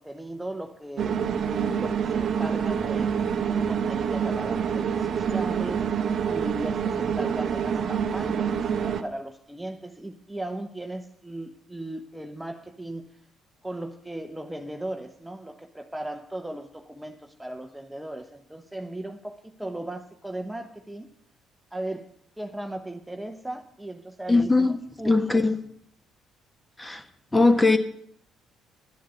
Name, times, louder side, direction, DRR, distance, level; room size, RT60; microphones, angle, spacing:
voice 1, 0.0-13.0 13.6-21.1 21.7-22.1 22.4-25.5, right 1 dB, 10° right, 1.0 m, -37 dB
sound 1, 1.0-9.0, right 7 dB, 50° right, 0.9 m, -26 dB
voice 2, 24.3-24.8 25.0-25.6 26.8-27.0 27.3-27.8, left 3 dB, 15° left, 1.4 m, -20 dB
11.5 x 10.5 x 6.9 m
figure-of-eight pair, 45°, 0 cm